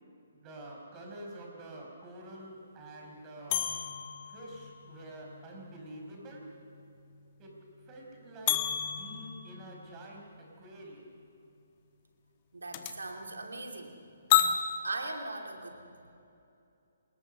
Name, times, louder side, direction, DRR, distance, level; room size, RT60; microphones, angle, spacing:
voice 1, 0.4-3.7 4.3-6.4 7.4-7.5 7.9-8.6 8.9-10.2 10.6-11.1, right 1 dB, 25° right, 0 dB, 5.5 m, -47 dB
sound 1, 3.5-6.9 7.2-7.3 8.5-10.2 12.7-12.9 14.3-14.6, left 11 dB, 35° left, 1.4 m, -31 dB
voice 2, 12.5-14.0 14.8-16.1, right 2 dB, 80° right, 3 dB, 2.6 m, -39 dB
27.5 x 21.0 x 5.6 m, 2.7 s
figure-of-eight pair, 140°, 0 cm